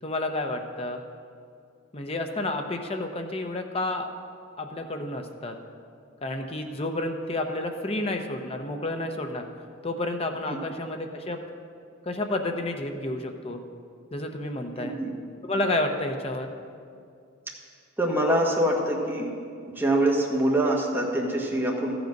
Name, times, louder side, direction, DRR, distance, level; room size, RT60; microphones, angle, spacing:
voice 1, 0.0-1.0 1.9-4.1 4.6-5.6 6.2-9.4 9.8-11.4 12.1-13.6 14.1-15.0 15.5-16.5, left 2 dB, 30° left, 5 dB, 0.8 m, -30 dB
voice 2, 14.8-15.1 18.0-19.3 19.7-22.0, right 1 dB, 10° right, -2 dB, 1.5 m, -24 dB
13.5 x 7.9 x 5.3 m, 2.3 s
head